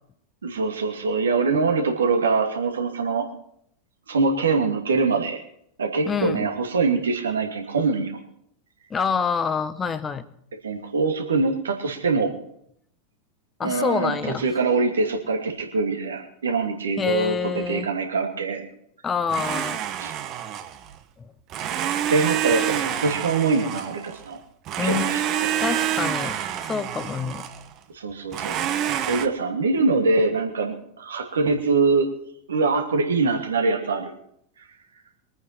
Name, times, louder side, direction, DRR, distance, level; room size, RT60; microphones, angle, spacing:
voice 1, 0.4-3.3 4.1-5.4 5.8-8.2 10.6-12.3 13.6-18.7 20.0-20.1 22.1-24.4 24.8-25.6 27.9-28.5 29.1-32.1 32.5-34.1, right 4 dB, 75° right, 3 dB, 2.5 m, -23 dB
voice 2, 6.0-6.5 8.9-10.3 13.6-14.5 17.0-17.9 19.0-19.8 21.2-21.3 24.8-25.1 25.6-27.5 31.4-31.5, left 6 dB, 20° left, 12 dB, 1.2 m, -27 dB
Domestic sounds home sounds, 19.3-20.9 21.5-24.3 24.7-27.7 28.3-29.3, right 10 dB, 40° right, 1.2 m, -27 dB
23.5 x 9.3 x 4.5 m, 0.71 s
figure-of-eight pair, 90°, 0 cm